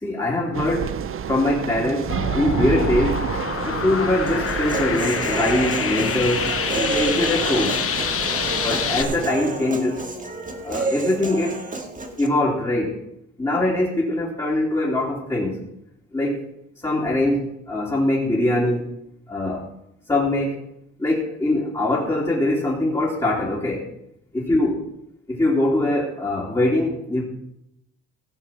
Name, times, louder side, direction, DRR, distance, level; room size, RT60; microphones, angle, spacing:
voice 1, 0.0-1.0 1.3-3.3 3.7-7.8 8.5-10.0 10.6-11.7 12.2-13.0 13.4-15.6 16.1-16.5 16.8-18.9 19.3-19.7 20.1-20.6 21.0-23.9 24.3-24.8 25.3-27.2, left 1 dB, 15° left, -5 dB, 3.3 m, -22 dB
sound 1, 0.5-9.3, right 8 dB, 45° right, 0.7 m, -29 dB
sound 2, 2.1-9.0, left 7 dB, 50° left, 1.2 m, -27 dB
Human voice, 4.3-12.3, right 3 dB, 25° right, 2.0 m, -30 dB
17.5 x 6.6 x 6.0 m, 0.79 s
cardioid pair, 90°, 30 cm